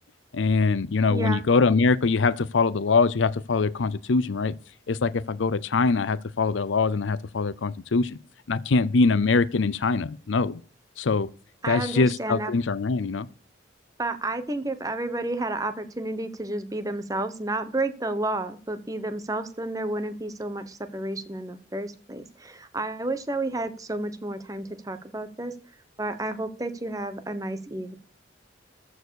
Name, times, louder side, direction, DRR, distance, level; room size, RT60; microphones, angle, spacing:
voice 1, 0.3-4.5 4.9-8.2 8.5-10.6 11.0-11.3 11.7-13.3, left 4 dB, 85° left, 0.6 m, -23 dB
voice 2, 1.1-1.4 11.6-12.5 14.0-25.6 26.0-28.0, right 2 dB, 20° right, 1.1 m, -31 dB
14.5 x 4.9 x 6.4 m
head